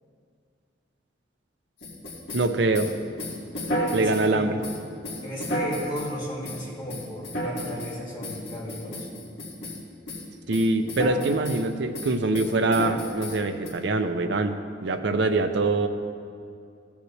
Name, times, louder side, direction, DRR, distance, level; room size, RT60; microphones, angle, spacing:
sound 1, 1.8-4.3 4.6-6.1 6.4-6.6 6.9-7.9 8.2-9.8 10.1-10.3 10.5-11.6 11.9-13.7, equal, 60° left, 2.2 m, -32 dB
voice 1, 2.3-2.9 3.9-4.6 10.5-14.5 14.8-15.9, right 2 dB, 65° right, 8 dB, 0.6 m, -24 dB
voice 2, 3.9-4.6 5.2-9.1, equal, 25° left, -8 dB, 2.7 m, -35 dB
15.5 x 7.1 x 3.3 m, 2.4 s
head